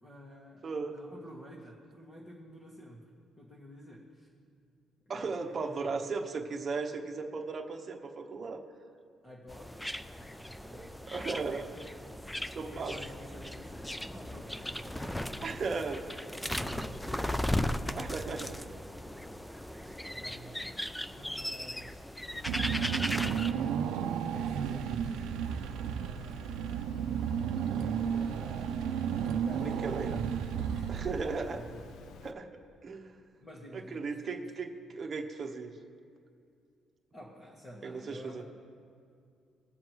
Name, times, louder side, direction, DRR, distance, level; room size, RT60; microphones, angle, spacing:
voice 1, 0.0-4.3 5.2-6.0 9.2-11.7 12.0-15.8 16.4-18.5 19.1-22.0 22.5-23.7 24.3-26.7 27.6-31.8 33.4-34.5 37.1-38.4, equal, 25° left, -4 dB, 1.7 m, -50 dB
voice 2, 0.6-1.0 5.1-8.6 11.1-11.6 12.5-12.9 15.4-16.0 16.7-16.8 17.9-18.5 29.6-30.2 30.9-31.6 32.2-32.5 32.8-33.1 33.7-35.8 37.8-38.4, right 4 dB, 35° right, 2 dB, 1.1 m, -36 dB
sound 1, 9.5-23.5, left 1 dB, 5° left, 0.4 m, -37 dB
Water, 22.3-32.3, left 6 dB, 70° left, 0.5 m, -51 dB
Car / Engine, 22.5-31.6, right 8 dB, 85° right, 0.4 m, -33 dB
22.0 x 7.4 x 3.1 m, 2.4 s
cardioid pair, 125°, 0 cm